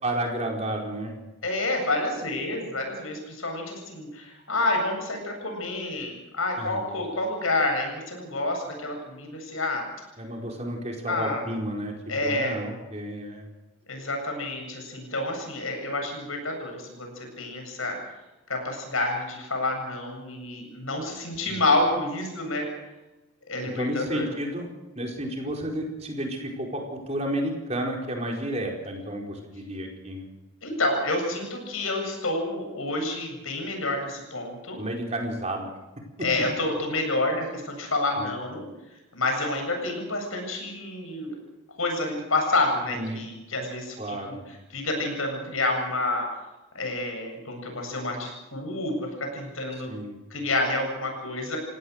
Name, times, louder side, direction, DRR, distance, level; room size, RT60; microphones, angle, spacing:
voice 1, 0.0-1.1 6.6-6.9 10.2-11.9 12.2-13.5 21.5-21.6 23.7-24.7 24.9-30.3 34.8-35.7 38.2-38.3 42.9-43.2 44.0-44.4 49.9-50.2, right 1 dB, 30° right, 0 dB, 4.7 m, -31 dB
voice 2, 1.4-9.8 11.1-11.4 12.1-12.6 13.9-18.0 18.5-22.7 23.5-24.3 30.6-34.8 36.2-38.7 39.1-41.3 41.8-44.3 44.7-46.3 46.7-49.9 50.3-51.6, left 2 dB, 80° left, 3 dB, 7.8 m, -28 dB
28.0 x 18.0 x 6.6 m, 1.0 s
head